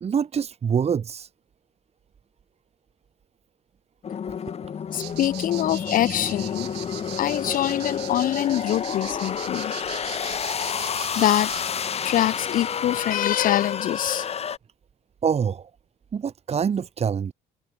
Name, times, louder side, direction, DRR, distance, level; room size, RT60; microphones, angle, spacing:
voice 1, 0.0-1.3 15.2-15.7 16.1-17.3, right 7 dB, 40° right, 2.5 m, -25 dB
sound 1, 4.0-14.6, left 7 dB, 35° left, 1.3 m, -30 dB
voice 2, 4.9-6.7 7.2-10.4 11.2-11.5 12.0-14.3, left 12 dB, 55° left, 0.5 m, -24 dB
sound 2, 4.9-11.7, right 19 dB, 85° right, 2.8 m, -40 dB
cardioid pair, 110°, 17 cm